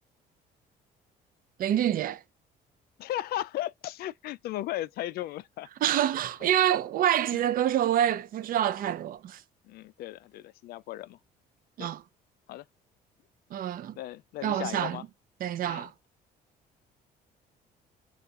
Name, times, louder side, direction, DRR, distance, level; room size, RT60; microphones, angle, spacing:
voice 1, 1.6-2.2 5.8-9.4 11.8-12.0 13.5-14.0 14.4-15.0 15.4-15.9, right 11 dB, 55° right, 0.6 m, -27 dB
voice 2, 3.0-5.7 7.3-7.4 8.1-8.2 9.6-11.2 11.8-11.9 12.5-12.6 14.0-15.0 15.7-15.9, left 14 dB, 65° left, 0.4 m, -36 dB
5.2 x 2.4 x 2.4 m
cardioid pair, 110°, 17 cm